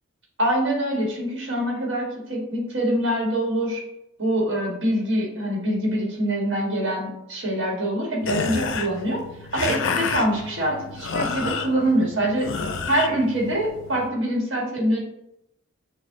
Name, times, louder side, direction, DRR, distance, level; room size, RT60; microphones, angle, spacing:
voice 1, 0.4-3.8 4.2-9.2 9.5-15.0, right 1 dB, 60° right, -2 dB, 1.5 m, -24 dB
sound 1, 8.2-14.1, left 5 dB, 60° left, 0.5 m, -30 dB
6.3 x 2.3 x 3.6 m, 0.82 s
head